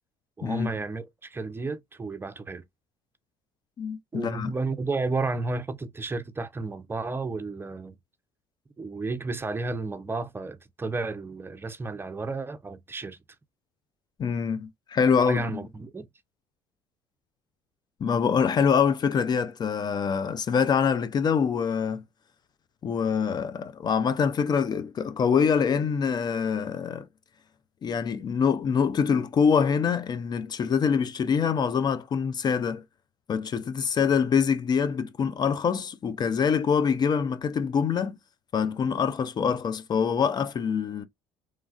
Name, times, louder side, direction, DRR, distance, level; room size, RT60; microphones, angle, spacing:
voice 1, 0.4-2.6 4.1-8.0 8.8-13.2 15.3-16.1, right 3 dB, 20° right, 0.5 m, -32 dB
voice 2, 3.8-4.5 14.2-15.6 18.0-22.0 22.8-27.1 27.8-32.8 33.3-38.2 38.5-41.1, left 6 dB, 40° left, 0.5 m, -25 dB
3.1 x 2.3 x 2.3 m
supercardioid pair, 80°, 11 cm